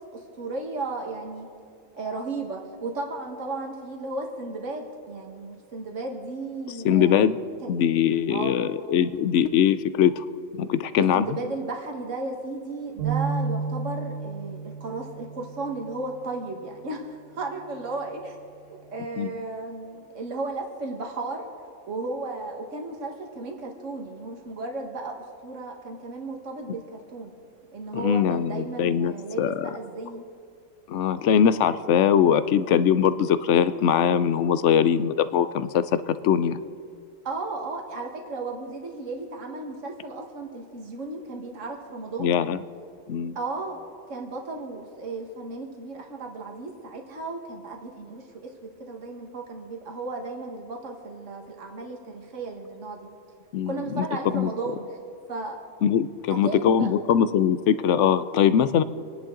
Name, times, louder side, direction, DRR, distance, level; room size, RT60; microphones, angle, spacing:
voice 1, 0.1-1.5 1.9-7.7 8.3-8.6 11.0-18.4 18.7-21.5 21.9-25.1 25.4-27.3 27.7-30.3 37.2-42.3 43.4-43.8 44.1-53.1 53.7-55.0 55.3-55.6 56.4-56.9, right 3 dB, 70° right, 2 dB, 2.0 m, -34 dB
voice 2, 6.8-7.4 7.7-10.2 10.6-11.2 19.2-19.3 27.9-29.7 30.9-36.6 42.2-42.6 43.1-43.4 53.5-54.1 54.3-54.5 55.8-58.8, left 8 dB, 70° left, 13 dB, 0.9 m, -22 dB
sound 1, 13.0-16.5, right 5 dB, 45° right, 2.4 m, -32 dB
27.0 x 10.5 x 3.8 m, 2.3 s
omnidirectional pair, 1.4 m